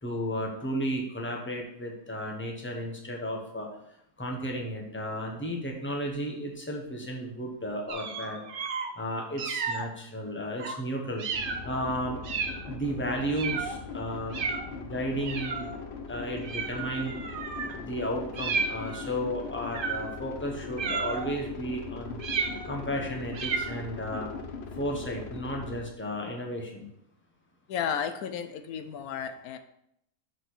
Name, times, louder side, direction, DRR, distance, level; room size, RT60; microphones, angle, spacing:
voice 1, 0.0-3.7 4.2-8.4 9.0-11.2 11.6-12.2 12.7-15.7 16.1-17.2 17.7-22.2 22.7-24.3 24.7-26.9, equal, 10° left, 0 dB, 1.2 m, -33 dB
sound 1, 7.9-8.9 9.4-9.9 10.6-10.8 11.2-11.7 12.2-12.7 13.3-13.8 14.3-14.7 15.3-15.8 16.4-17.8 18.3-19.1 19.7-20.2 20.8-21.4 22.2-22.8 23.3-23.8, right 5 dB, 45° right, 0.8 m, -33 dB
sound 2, 11.3-25.8, left 4 dB, 50° left, 1.1 m, -40 dB
voice 2, 27.7-29.6, left 8 dB, 85° left, 9 dB, 1.2 m, -33 dB
6.2 x 5.1 x 6.2 m, 0.76 s
omnidirectional pair, 1.5 m